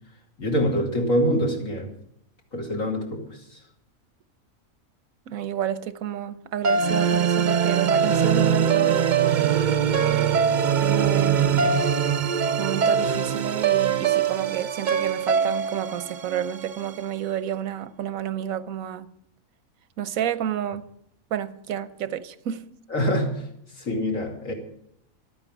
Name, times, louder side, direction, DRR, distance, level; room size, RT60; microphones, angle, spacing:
voice 1, 0.4-1.9 2.5-3.3 11.5-11.8 22.9-23.3 23.8-24.5, equal, 75° left, 3.1 m, -25 dB
voice 2, 5.3-9.1 10.8-11.9 12.6-19.1 20.0-20.9 21.3-22.7, right 10 dB, 90° right, 1.2 m, -30 dB
sound 1, 6.6-16.9, right 7 dB, 50° right, 0.6 m, -22 dB
13.0 x 9.3 x 9.0 m
omnidirectional pair, 1.4 m